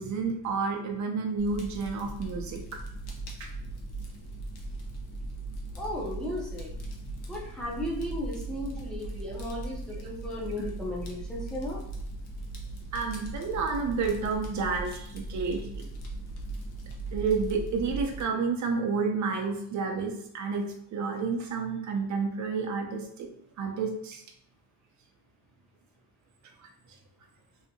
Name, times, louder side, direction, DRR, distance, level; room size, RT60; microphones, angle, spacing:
voice 1, 0.0-2.6 3.4-3.5 12.9-15.8 17.1-20.6 20.9-23.3 23.6-24.2, right 4 dB, 50° right, 3 dB, 0.6 m, -30 dB
Fire, 1.4-18.2, right 2 dB, 75° left, 0.8 m, -39 dB
voice 2, 5.8-6.7 7.3-11.8, left 1 dB, ahead, -5 dB, 0.6 m, -35 dB
3.3 x 2.8 x 2.6 m, 0.69 s
cardioid pair, 175°, 39 cm